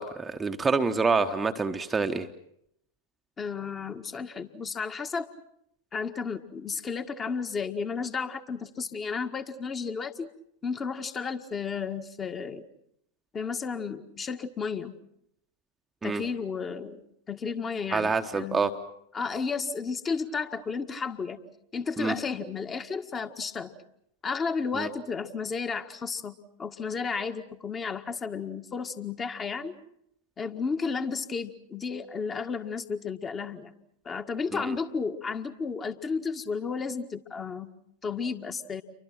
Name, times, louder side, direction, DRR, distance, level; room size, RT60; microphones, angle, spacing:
voice 1, 0.0-2.3 16.0-16.2 17.9-18.7 22.0-22.1 24.7-24.9 34.5-34.8, right 4 dB, 15° right, 6 dB, 1.2 m, -27 dB
voice 2, 3.4-5.3 5.9-10.3 10.6-12.6 13.3-15.0 16.0-17.0 17.3-18.7 19.1-21.4 21.7-23.7 24.2-29.7 30.4-33.7 34.1-37.7 38.0-38.8, left 5 dB, 20° left, 7 dB, 1.8 m, -33 dB
29.5 x 24.5 x 6.0 m, 0.75 s
figure-of-eight pair, 90°, 0 cm